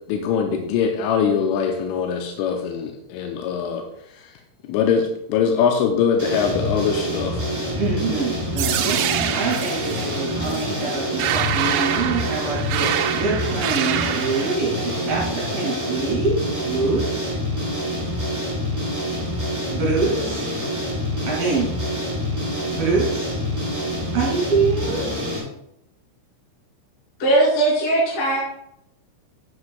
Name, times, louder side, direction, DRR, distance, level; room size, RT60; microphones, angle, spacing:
voice 1, 0.1-3.8 4.6-7.4, left 6 dB, 80° left, 3 dB, 3.1 m, -22 dB
sound 1, 6.2-25.4, left 1 dB, 10° right, 2.2 m, -26 dB
voice 2, 7.7-12.9 13.1-17.3 19.7-20.5 21.2-21.7 22.7-23.8 24.1-25.1, right 4 dB, 55° right, -5 dB, 3.6 m, -25 dB
sound 2, 8.6-14.6, right 10 dB, 85° right, 2.8 m, -26 dB
voice 3, 27.2-28.4, right 2 dB, 35° left, -6 dB, 3.5 m, -19 dB
9.6 x 9.6 x 2.3 m, 0.80 s
omnidirectional pair, 5.9 m